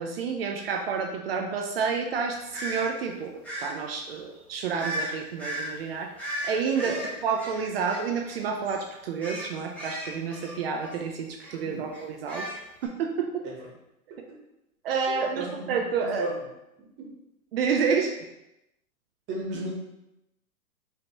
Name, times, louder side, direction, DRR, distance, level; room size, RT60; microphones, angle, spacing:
voice 1, 0.0-3.3 3.6-6.9 7.2-12.5 12.8-13.5 14.8-16.2 17.5-18.2, right 6 dB, 45° right, 3 dB, 0.5 m, -29 dB
sound 1, 2.5-2.8 3.4-3.7 4.8-5.1 5.4-5.7 6.2-8.4 8.6-8.8 9.2-11.0 11.4-11.6 11.9-12.9, right 1 dB, 5° left, 0.8 m, -35 dB
voice 2, 15.1-15.5 16.0-16.3 17.0-17.1 19.3-19.7, right 3 dB, 25° right, -2 dB, 1.1 m, -33 dB
5.2 x 3.0 x 3.0 m, 0.89 s
hypercardioid pair, 140°, 45 cm